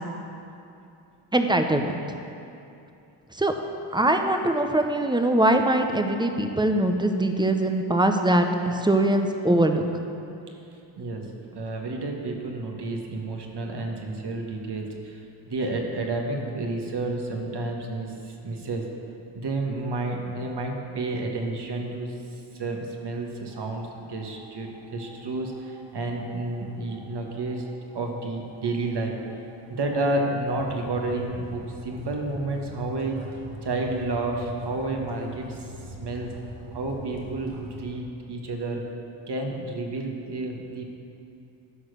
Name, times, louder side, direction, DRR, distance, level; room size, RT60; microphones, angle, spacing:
voice 1, 1.3-2.0 3.3-3.5 3.9-9.8, right 1 dB, 10° right, 5 dB, 0.8 m, -22 dB
voice 2, 11.5-18.9 19.3-27.7 27.9-29.1 29.7-33.2 33.6-36.3 36.7-38.8 39.3-40.8, right 2 dB, 50° right, 1 dB, 1.6 m, -30 dB
sound 1, 23.4-37.8, left 2 dB, 70° right, 2.1 m, -44 dB
11.0 x 4.9 x 6.5 m, 2.6 s
supercardioid pair, 55°, 50 cm